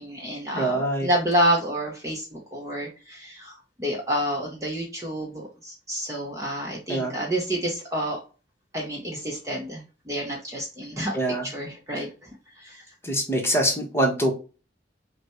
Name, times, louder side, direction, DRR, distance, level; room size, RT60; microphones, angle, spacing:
voice 1, 0.0-3.5 3.8-8.2 8.7-11.2 11.4-12.1 12.6-12.8, equal, 15° right, -1 dB, 0.9 m, -28 dB
voice 2, 0.5-1.1 6.9-7.1 11.1-11.5 13.0-14.3, right 1 dB, 15° left, 0 dB, 1.1 m, -24 dB
5.8 x 2.3 x 3.0 m, 0.33 s
head